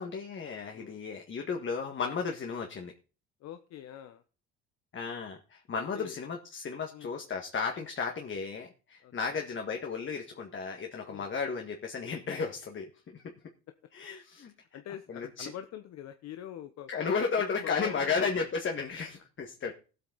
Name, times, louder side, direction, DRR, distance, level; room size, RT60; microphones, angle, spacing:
voice 1, 0.0-2.9 4.9-13.3 13.9-14.5 15.1-15.5 16.9-19.7, left 5 dB, 40° left, 3 dB, 1.9 m, -34 dB
voice 2, 3.4-4.2 5.8-6.2 6.9-7.1 9.0-9.5 11.1-11.3 14.7-16.9 17.4-18.5 19.7-19.8, left 10 dB, 60° left, 9 dB, 1.1 m, -45 dB
17.0 x 8.4 x 4.1 m, 0.36 s
supercardioid pair, 70°, 29 cm